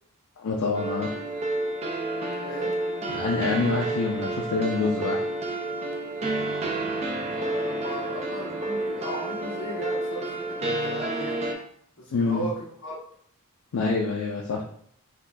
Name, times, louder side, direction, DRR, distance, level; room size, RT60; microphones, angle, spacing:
voice 1, 0.4-1.1 3.1-5.2 12.1-12.5 13.7-14.6, left 3 dB, 75° left, -2 dB, 0.5 m, -26 dB
sound 1, 0.7-11.5, right 2 dB, 30° right, 0.4 m, -30 dB
voice 2, 7.2-11.4 12.0-12.9, equal, 60° left, -5 dB, 1.3 m, -36 dB
3.9 x 2.2 x 2.5 m, 0.62 s
head